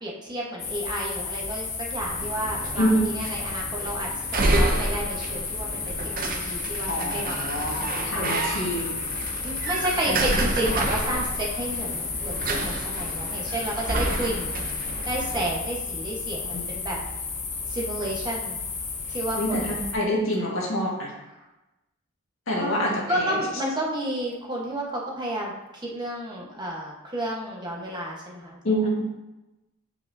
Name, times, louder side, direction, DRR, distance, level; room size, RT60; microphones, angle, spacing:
voice 1, 0.0-7.5 8.1-8.4 9.4-17.0 17.7-18.6 19.1-19.8 22.6-28.6, right 1 dB, 20° right, -3 dB, 1.3 m, -31 dB
sound 1, 0.6-19.9, left 4 dB, 35° left, 0.8 m, -32 dB
sound 2, 2.0-15.5, right 2 dB, 40° right, 0.6 m, -30 dB
voice 2, 2.8-3.1 6.9-9.0 10.0-10.4 12.5-12.6 16.5-16.7 19.3-21.1 22.5-23.4 28.6-29.1, equal, 65° left, -4 dB, 1.8 m, -27 dB
8.1 x 5.0 x 2.7 m, 1.0 s
head